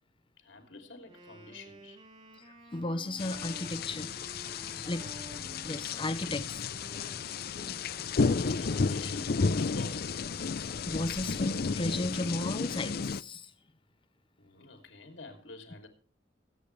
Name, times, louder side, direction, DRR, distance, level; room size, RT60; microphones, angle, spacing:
voice 1, 0.4-2.0 5.2-5.6 8.1-10.1 14.4-15.9, left 3 dB, 90° left, 3.0 m, -49 dB
Wind instrument woodwind instrument, 1.0-8.7, equal, 35° right, 3.8 m, -52 dB
voice 2, 2.4-4.3 4.6-5.2 5.6-6.6 7.2-8.2 10.5-13.5, left 2 dB, 30° left, 0.8 m, -36 dB
sound 1, 3.2-13.2, left 4 dB, 55° left, 0.5 m, -32 dB
23.0 x 8.9 x 3.3 m
head